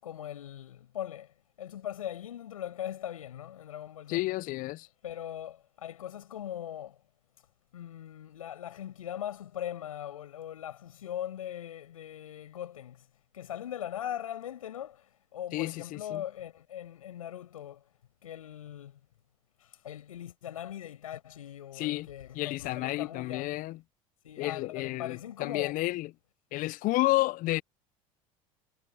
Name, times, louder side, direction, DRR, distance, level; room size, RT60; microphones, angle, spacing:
voice 1, 0.0-4.2 5.0-7.0 7.7-13.1 13.3-17.8 18.2-19.0 19.6-23.6 24.2-25.8, left 11 dB, 80° left, 7.6 m, -40 dB
voice 2, 4.1-4.9 15.5-16.2 21.8-22.1 22.3-23.8 24.4-26.1 26.5-27.6, left 18 dB, 50° left, 0.7 m, -31 dB
figure-of-eight pair, 65°, 18 cm